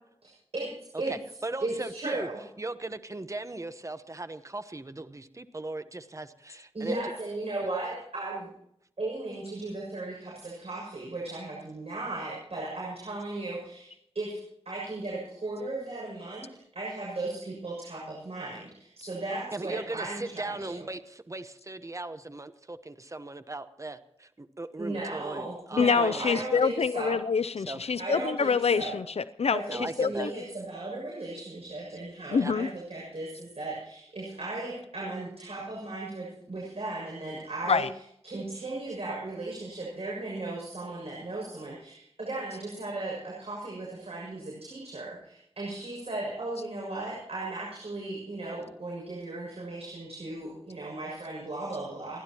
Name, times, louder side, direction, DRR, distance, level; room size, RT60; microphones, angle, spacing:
voice 1, 0.2-0.7 1.0-1.1 1.6-2.4 6.7-8.5 9.0-14.4 14.7-16.5 16.7-20.7 24.8-27.2 28.0-28.9 29.5-37.8 38.2-52.2, right 2 dB, 70° right, -3 dB, 7.0 m, -36 dB
voice 2, 1.1-2.3 2.6-7.0 19.5-26.4 27.7-27.9 29.7-30.3 32.3-32.5, right 2 dB, 30° right, 11 dB, 1.0 m, -38 dB
voice 3, 25.8-30.3 32.3-32.7 37.7-37.9, left 5 dB, 70° left, 13 dB, 0.5 m, -26 dB
29.5 x 11.5 x 3.0 m, 0.74 s
wide cardioid pair, 60°, 11 cm